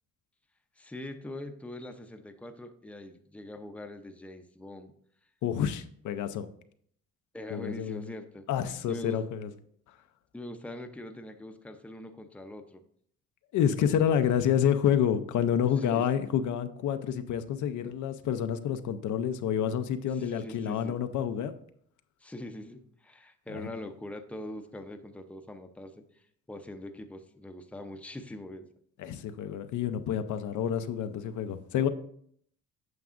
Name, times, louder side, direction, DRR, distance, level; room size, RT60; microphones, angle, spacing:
voice 1, 0.8-4.9 7.3-8.5 8.9-9.2 10.3-12.8 14.2-14.4 15.8-16.1 20.0-21.1 22.2-26.2 26.5-28.7, left 1 dB, 5° left, 6 dB, 0.6 m, -43 dB
voice 2, 5.4-6.5 7.5-8.0 8.5-9.5 13.5-21.5 23.5-23.7 29.0-31.9, left 9 dB, 75° left, 10 dB, 0.6 m, -28 dB
9.3 x 5.9 x 2.5 m, 0.65 s
cardioid pair, 90°, 30 cm